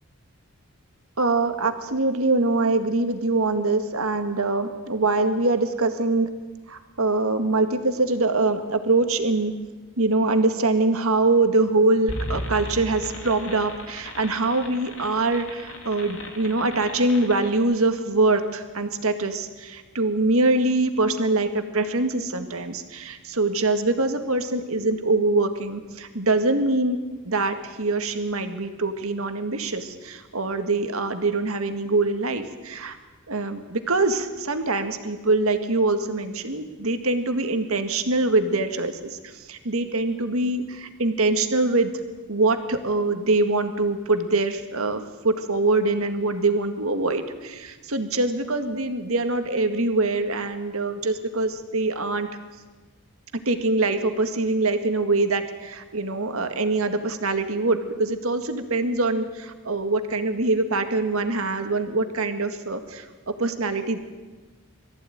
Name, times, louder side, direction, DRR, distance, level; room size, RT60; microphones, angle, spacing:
voice 1, 1.2-6.3 6.7-9.5 10.0-27.0 27.2-33.0 33.3-41.9 42.3-52.3 53.5-63.0 63.4-64.0, right 2 dB, 75° right, 7 dB, 1.9 m, -24 dB
sound 1, 12.1-17.6, left 1 dB, 70° left, 3.6 m, -36 dB
22.5 x 14.5 x 9.3 m, 1.3 s
head